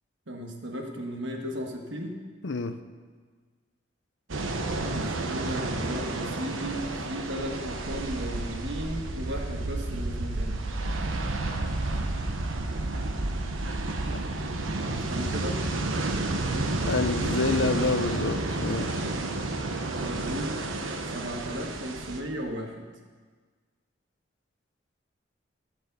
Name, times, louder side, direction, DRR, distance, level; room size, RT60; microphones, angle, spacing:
voice 1, 0.3-2.2 4.8-10.6 14.8-15.7 19.3-19.4 19.9-20.6 21.0-22.9, equal, 70° right, 2 dB, 1.5 m, -35 dB
voice 2, 2.4-2.8 14.1-14.2 16.8-19.0, left 3 dB, 70° left, 9 dB, 0.7 m, -28 dB
sound 1, 4.3-22.2, right 2 dB, 90° right, 1.0 m, -31 dB
14.5 x 5.4 x 8.1 m, 1.5 s
head